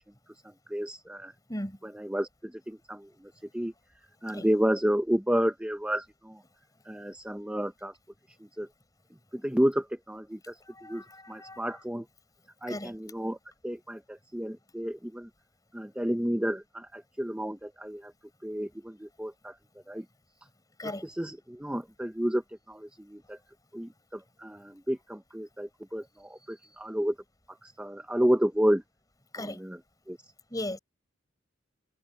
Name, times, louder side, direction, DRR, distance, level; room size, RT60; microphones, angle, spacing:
voice 1, 0.7-1.3 1.8-3.7 4.2-6.4 6.9-7.9 8.6-8.7 9.3-12.0 12.6-13.4 13.6-15.3 15.7-18.1 18.4-19.6 19.9-20.0 21.0-23.4 23.7-27.1 27.6-28.8 29.4-29.8 30.1-30.2, equal, 5° right, 0.7 m, -31 dB
voice 2, 10.7-11.6 12.7-13.0 20.8-21.1 29.3-29.6 30.5-30.8, left 1 dB, 20° left, 5.2 m, -37 dB
head